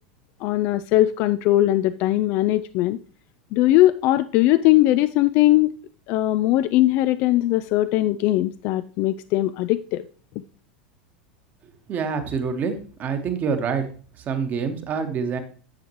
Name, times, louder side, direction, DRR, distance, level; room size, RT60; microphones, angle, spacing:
voice 1, 0.4-3.0 3.5-5.7 6.1-10.0, left 15 dB, 45° left, 0.3 m, -20 dB
voice 2, 11.9-12.7 13.0-13.9 14.3-15.4, right 6 dB, 35° right, 1.4 m, -26 dB
10.5 x 7.1 x 3.0 m
figure-of-eight pair, 85°, 5 cm